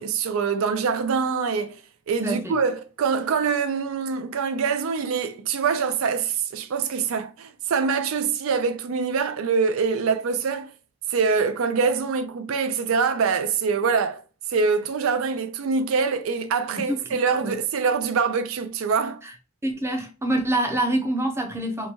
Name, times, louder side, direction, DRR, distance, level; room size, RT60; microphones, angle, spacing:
voice 1, 0.0-1.8 2.1-10.7 11.1-14.2 14.5-19.2, right 5 dB, 85° right, 0.4 m, -24 dB
voice 2, 2.2-2.5 16.7-17.0 17.3-17.6 19.2-19.3 19.6-21.9, right 1 dB, 10° right, 0.5 m, -26 dB
4.5 x 2.2 x 2.8 m
head